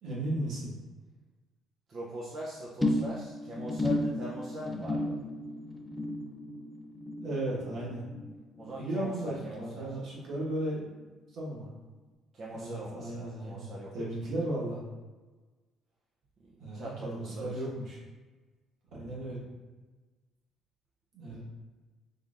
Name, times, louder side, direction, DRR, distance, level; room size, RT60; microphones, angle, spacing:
voice 1, 0.0-0.8 7.2-8.1 8.7-10.9 11.3-11.7 12.5-14.8 16.6-18.0 18.9-19.4 21.1-21.4, right 1 dB, 65° right, -5 dB, 1.3 m, -35 dB
voice 2, 1.9-5.2 8.6-9.9 12.3-13.9 16.7-17.6, equal, 40° right, -5 dB, 0.6 m, -41 dB
sound 1, 2.8-9.4 9.7-10.1 10.4-10.5, left 1 dB, 10° left, 0.3 m, -34 dB
3.8 x 3.3 x 2.4 m, 1.3 s
cardioid pair, 130°, 0 cm